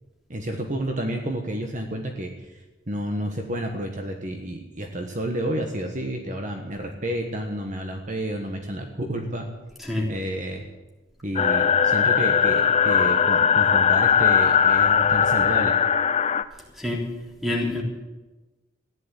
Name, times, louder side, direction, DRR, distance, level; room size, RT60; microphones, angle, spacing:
voice 1, 0.3-9.5 10.1-10.6 11.2-15.7, right 1 dB, 40° right, 4 dB, 1.4 m, -30 dB
sound 1, 11.4-16.4, left 7 dB, 35° left, 0.6 m, -19 dB
voice 2, 16.7-17.1 17.4-17.8, left 1 dB, ahead, -2 dB, 3.4 m, -26 dB
14.5 x 11.0 x 8.4 m, 1.1 s
head